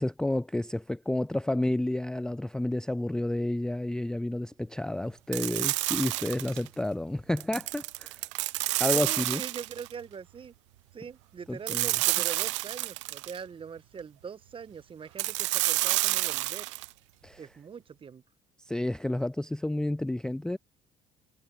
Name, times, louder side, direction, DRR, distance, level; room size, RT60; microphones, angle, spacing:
voice 1, 0.0-8.2 8.8-9.4 11.5-11.9 17.2-17.4 18.7-20.6, left 1 dB, 5° left, 0.4 m, -30 dB
sound 1, 5.3-6.7 7.4-9.9 11.7-13.4 15.2-16.9, right 20 dB, 80° right, 0.4 m, -29 dB
voice 2, 8.9-10.5 10.9-16.7 17.4-18.2, right 6 dB, 35° right, 1.3 m, -42 dB
hypercardioid pair, 55°, 15 cm